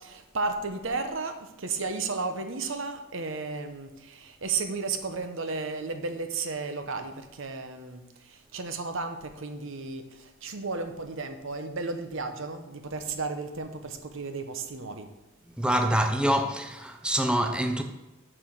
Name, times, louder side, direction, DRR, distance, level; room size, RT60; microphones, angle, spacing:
voice 1, 0.0-15.1, right 4 dB, 60° right, 0.9 m, -34 dB
voice 2, 15.6-17.8, equal, 5° right, 0.6 m, -25 dB
6.8 x 6.1 x 6.0 m
head